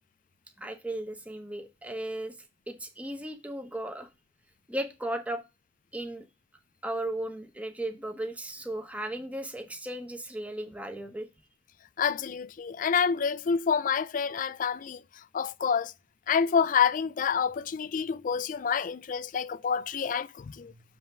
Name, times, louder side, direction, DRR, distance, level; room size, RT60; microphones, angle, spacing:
voice 1, 0.6-2.4 2.7-4.1 4.7-5.4 5.9-6.2 6.8-11.3 20.7-20.8, right 1 dB, 10° right, 1.0 m, -36 dB
voice 2, 12.0-15.0 15.3-15.9 16.3-20.7, left 6 dB, 45° left, 0.4 m, -28 dB
7.2 x 3.5 x 5.9 m
head